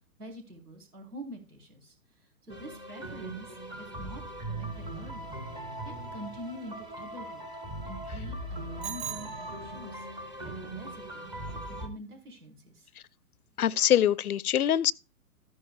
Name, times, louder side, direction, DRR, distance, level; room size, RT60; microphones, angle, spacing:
voice 1, 0.2-5.4 5.8-7.5 7.8-10.1 10.4-12.9, equal, 80° right, 4.4 m, -46 dB
sound 1, 2.5-11.9, right 1 dB, 10° right, 0.7 m, -40 dB
Bicycle bell, 8.8-10.1, right 8 dB, 30° right, 1.1 m, -40 dB
voice 2, 13.6-14.9, left 10 dB, 75° left, 0.6 m, -24 dB
14.0 x 10.5 x 2.4 m
figure-of-eight pair, 125°, 44 cm